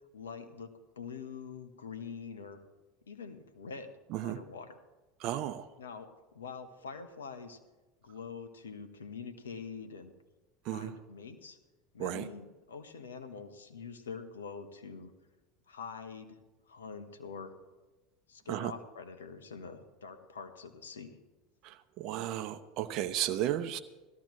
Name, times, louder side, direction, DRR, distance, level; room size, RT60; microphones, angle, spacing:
voice 1, 0.1-2.6 3.0-4.0 4.2-4.8 5.8-6.1 6.3-7.6 8.0-10.1 10.7-11.6 11.9-15.1 15.7-16.4 16.7-17.5 18.3-21.2, left 5 dB, 90° left, 9 dB, 1.2 m, -45 dB
voice 2, 5.2-5.7 10.6-10.9 12.0-12.3 18.5-18.7 21.6-23.8, right 12 dB, 55° right, 9 dB, 0.7 m, -34 dB
17.5 x 13.5 x 3.1 m, 1.1 s
hypercardioid pair, 85°, 0 cm